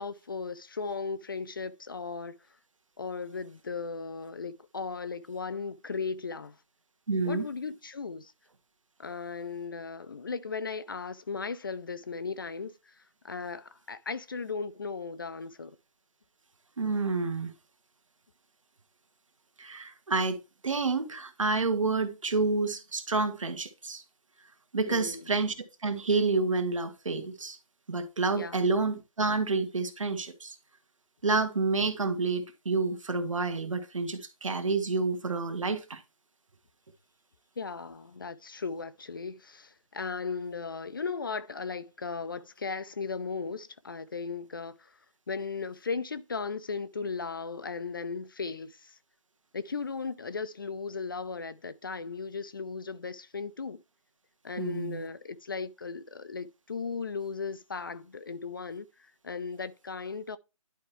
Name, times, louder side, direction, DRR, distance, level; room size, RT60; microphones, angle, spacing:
voice 1, 0.0-2.3 3.0-6.6 7.3-8.3 9.0-12.9 13.2-15.7 24.9-25.2 28.3-28.6 37.6-45.0 45.3-49.0 49.5-53.8 54.4-60.4, left 5 dB, 40° left, 0.5 m, -36 dB
voice 2, 7.1-7.5 16.8-17.5 19.6-20.4 20.6-24.0 24.7-25.5 25.8-27.6 27.9-30.5 31.2-36.0 54.6-55.0, right 3 dB, 65° right, 1.7 m, -29 dB
11.0 x 4.4 x 3.2 m
figure-of-eight pair, 160°, 18 cm